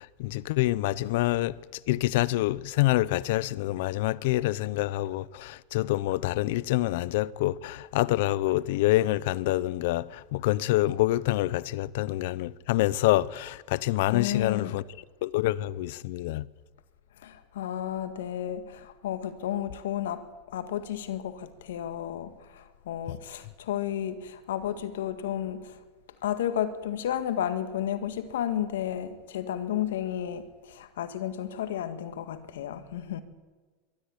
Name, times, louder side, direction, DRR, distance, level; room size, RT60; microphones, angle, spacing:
voice 1, 0.0-1.5 1.9-14.8 15.2-16.5 23.1-23.2, left 17 dB, 70° left, 0.7 m, -26 dB
voice 2, 14.1-14.8 17.2-20.3 20.5-25.8 26.2-33.2, left 10 dB, 85° left, 1.9 m, -32 dB
22.5 x 13.0 x 9.9 m
supercardioid pair, 120°, 0 cm